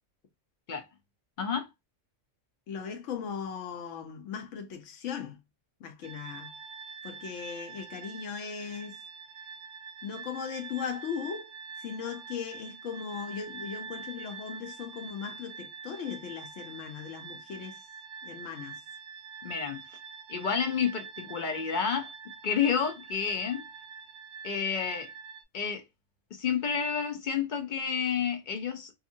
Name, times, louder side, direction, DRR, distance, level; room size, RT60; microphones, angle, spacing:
voice 1, 2.7-5.4 5.8-6.6 7.0-9.0 10.0-17.9 18.2-18.8, left 7 dB, 75° left, 0.9 m, -38 dB
sound 1, 6.0-25.4, right 5 dB, 70° right, 0.8 m, -45 dB
voice 2, 19.4-19.8 20.3-22.1 22.4-23.6 24.4-25.1 25.5-25.8 26.3-28.9, left 6 dB, 55° left, 0.5 m, -30 dB
2.7 x 2.4 x 2.6 m
omnidirectional pair, 1.3 m